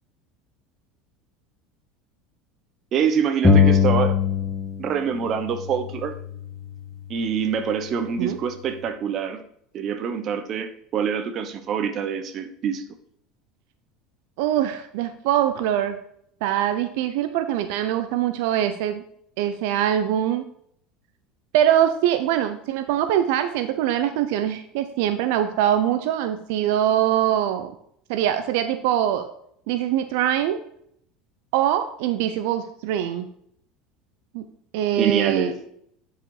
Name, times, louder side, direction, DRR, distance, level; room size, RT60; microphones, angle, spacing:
voice 1, 2.9-4.2 4.8-6.1 7.1-9.4 9.7-12.8 35.0-35.5, right 7 dB, 40° right, 8 dB, 1.0 m, -25 dB
sound 1, 3.4-5.0 5.2-7.0, left 6 dB, 10° left, 1.6 m, -21 dB
voice 2, 14.4-16.0 16.4-19.0 19.4-20.4 21.5-27.7 28.1-29.3 29.7-30.6 31.5-33.3 34.3-34.4 34.7-35.5, right 11 dB, 75° right, 9 dB, 0.6 m, -23 dB
9.8 x 5.0 x 4.8 m, 0.68 s
supercardioid pair, 135°, 0 cm